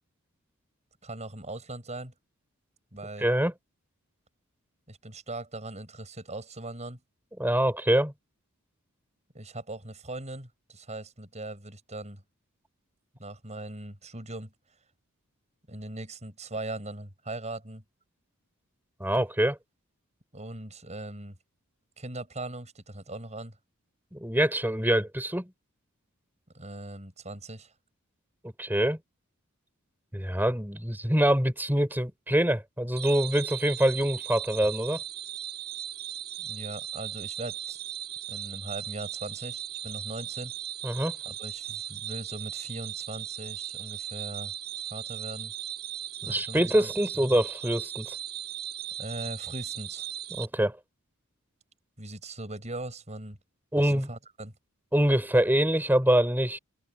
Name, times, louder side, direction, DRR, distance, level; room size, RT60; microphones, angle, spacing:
voice 1, 1.0-2.1 2.9-3.3 4.9-7.0 9.3-12.2 13.2-14.5 15.7-17.8 20.3-21.4 22.0-23.6 26.5-27.7 36.4-37.8 38.3-40.5 41.2-44.5 44.9-45.5 46.2-46.9 49.0-50.1 52.0-53.4 53.8-54.5, right 2 dB, 30° right, 7.6 m, -40 dB
voice 2, 3.2-3.5 7.4-8.1 19.0-19.6 24.1-25.5 28.6-29.0 30.1-35.0 40.8-41.2 46.2-48.2 50.3-50.8 53.7-54.1 54.9-56.6, right 1 dB, 10° right, 4.8 m, -25 dB
sound 1, 33.0-50.5, right 11 dB, 45° right, 7.2 m, -38 dB
head